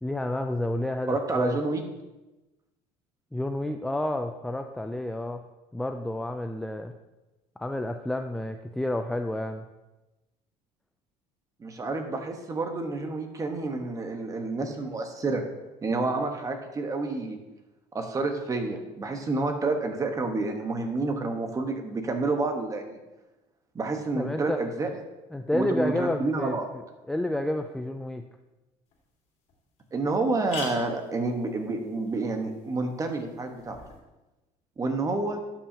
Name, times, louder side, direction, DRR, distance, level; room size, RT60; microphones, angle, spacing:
voice 1, 0.0-1.6 3.3-5.5 5.7-6.9 7.6-9.7 24.2-24.6 25.3-26.6 27.1-28.3, left 1 dB, 5° left, 6 dB, 0.3 m, -30 dB
voice 2, 1.1-1.8 11.6-15.4 15.8-17.4 17.9-23.0 23.7-24.9 25.5-26.7 29.9-33.8 34.8-35.4, right 3 dB, 25° right, 5 dB, 1.2 m, -29 dB
sound 1, 28.9-29.0 29.5-29.6 29.8-29.9 30.2-34.0, left 4 dB, 50° left, 2.3 m, -44 dB
12.0 x 5.9 x 2.8 m, 1.0 s
cardioid pair, 115°, 14 cm